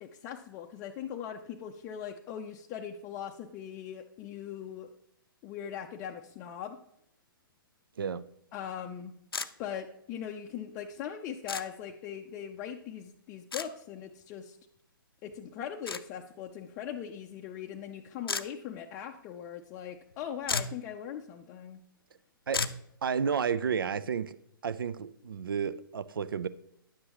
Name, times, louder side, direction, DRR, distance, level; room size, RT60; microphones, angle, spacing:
voice 1, 0.0-4.9 5.4-6.8 8.5-9.1 9.6-14.6 15.2-21.8, left 9 dB, 25° left, 0.4 m, -40 dB
sound 1, 9.3-9.5 11.5-11.6 13.5-13.7 15.9-16.0 18.3-18.5 20.1-20.2 20.4-20.8 22.5-22.8, left 4 dB, 80° left, 0.5 m, -32 dB
voice 2, 23.0-24.4 24.6-26.5, right 6 dB, 70° right, 0.5 m, -31 dB
10.0 x 7.6 x 2.9 m
figure-of-eight pair, 125°, 12 cm